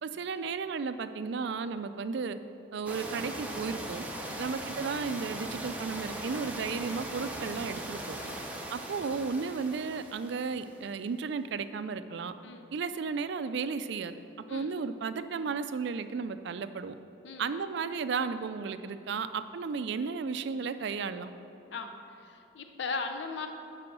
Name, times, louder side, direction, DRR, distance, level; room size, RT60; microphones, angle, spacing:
voice 1, 0.0-2.4 2.7-4.1 4.4-8.2 8.7-12.3 12.7-14.1 14.5-16.9 17.4-21.3, right 5 dB, 60° right, 11 dB, 0.3 m, -34 dB
sound 1, 2.9-10.8, right 1 dB, 5° right, 0.7 m, -40 dB
voice 2, 22.3-23.5, left 4 dB, 65° left, 6 dB, 0.6 m, -37 dB
9.6 x 4.9 x 6.1 m, 2.8 s
head